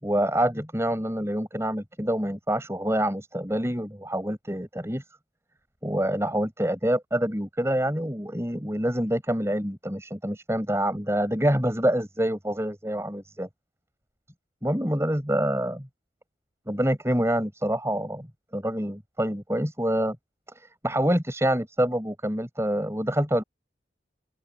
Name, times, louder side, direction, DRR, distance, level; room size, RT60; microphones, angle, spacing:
voice 1, 0.0-5.0 5.8-13.5 14.6-15.9 16.7-18.3 18.5-20.2 20.8-23.4, right 1 dB, 15° right, 6.4 m, -26 dB
open air
head